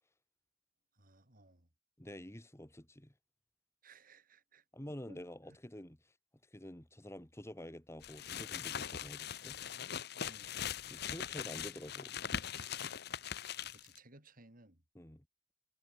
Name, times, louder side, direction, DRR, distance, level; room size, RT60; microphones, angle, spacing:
voice 1, 0.9-1.7 3.8-4.7 5.1-5.2 5.5-5.6 10.3-10.8 13.5-14.8, right 2 dB, 50° right, 5.4 m, -61 dB
voice 2, 2.0-3.1 4.7-6.1 6.5-9.6 10.9-12.2 15.0-15.2, left 1 dB, 15° left, 2.2 m, -48 dB
sound 1, 8.0-14.0, left 8 dB, 60° left, 0.9 m, -41 dB
head